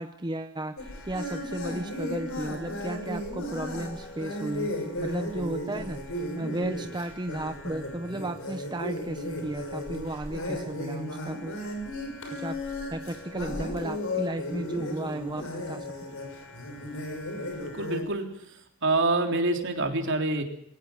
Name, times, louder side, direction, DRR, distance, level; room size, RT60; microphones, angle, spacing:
voice 1, 0.0-6.0 6.4-11.6 12.3-15.9, right 1 dB, 20° right, 8 dB, 0.8 m, -34 dB
sound 1, 0.8-18.0, left 1 dB, 65° left, 6.3 m, -35 dB
voice 2, 17.6-18.3 18.8-20.4, right 2 dB, 55° right, 4 dB, 3.5 m, -26 dB
22.0 x 17.5 x 8.3 m, 0.74 s
head